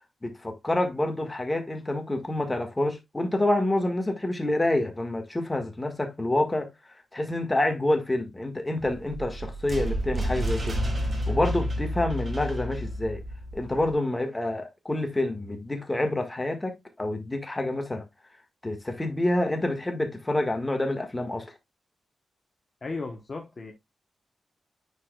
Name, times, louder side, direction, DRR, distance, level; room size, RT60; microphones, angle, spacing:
voice 1, 0.2-6.7 7.1-10.8 11.3-13.2 13.5-18.0 18.6-21.5, left 1 dB, 15° left, 1.7 m, -27 dB
sound 1, 8.8-13.9, equal, 35° right, 1.8 m, -30 dB
voice 2, 22.8-23.7, left 3 dB, 40° left, 1.1 m, -35 dB
9.7 x 4.7 x 2.3 m
wide cardioid pair, 105°, 0 cm